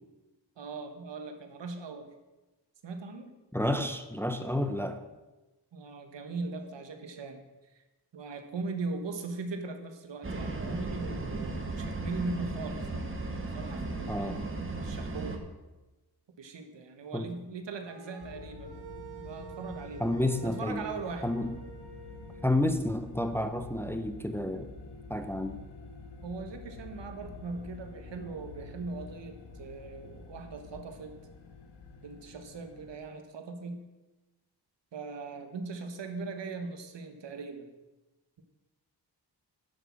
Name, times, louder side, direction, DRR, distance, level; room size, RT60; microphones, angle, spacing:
voice 1, 0.6-2.1 2.8-3.3 5.7-7.8 8.1-12.9 13.5-14.6 14.8-15.5 16.4-18.7 19.2-20.0 20.4-21.3 26.2-31.2 32.0-33.8 34.9-37.7, right 3 dB, 80° right, 6 dB, 1.7 m, -40 dB
voice 2, 3.5-5.0 14.1-14.4 17.1-17.3 20.0-20.8 21.2-21.5 22.4-24.7 25.1-25.6, left 1 dB, 5° left, 8 dB, 0.7 m, -30 dB
sound 1, 10.2-15.4, right 2 dB, 30° right, 1.5 m, -36 dB
sound 2, 17.9-22.7, right 5 dB, 60° right, 1.8 m, -49 dB
sound 3, 18.2-33.0, left 3 dB, 70° left, 1.7 m, -48 dB
10.5 x 7.4 x 7.5 m, 1.1 s
wide cardioid pair, 150°, 43 cm